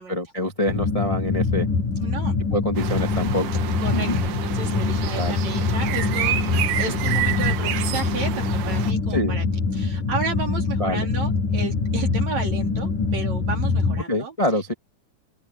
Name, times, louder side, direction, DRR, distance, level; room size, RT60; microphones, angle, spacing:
voice 1, 0.0-1.7 2.5-3.5 3.9-4.2 5.2-5.3 9.1-9.4 10.8-11.1 14.1-14.7, left 1 dB, 10° left, 1.7 m, -25 dB
sound 1, 0.7-14.0, left 4 dB, 60° left, 7.7 m, -24 dB
voice 2, 2.0-2.4 3.8-9.4 9.7-14.3, right 4 dB, 50° right, 5.4 m, -33 dB
sound 2, 2.8-8.9, right 12 dB, 70° right, 2.5 m, -29 dB
open air
omnidirectional pair, 4.3 m